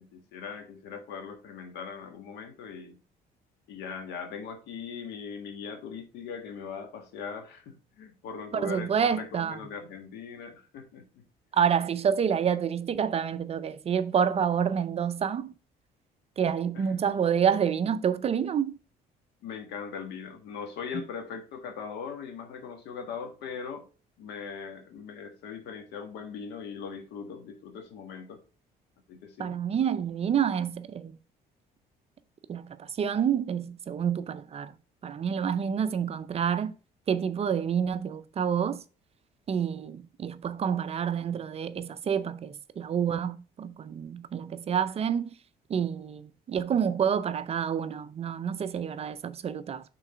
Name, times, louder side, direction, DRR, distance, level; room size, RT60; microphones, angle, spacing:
voice 1, 0.0-3.0 3.7-11.2 11.5-11.7 16.7-16.9 19.4-23.9 24.2-28.4 29.1-29.5, left 6 dB, 85° left, 1.5 m, -40 dB
voice 2, 8.5-9.6 11.5-15.5 16.4-18.8 29.4-31.2 32.5-34.7 35.0-36.8 37.1-38.8 39.5-45.3 45.7-49.8, right 7 dB, 35° right, 0.5 m, -28 dB
5.8 x 3.8 x 5.0 m
cardioid pair, 110°, 17 cm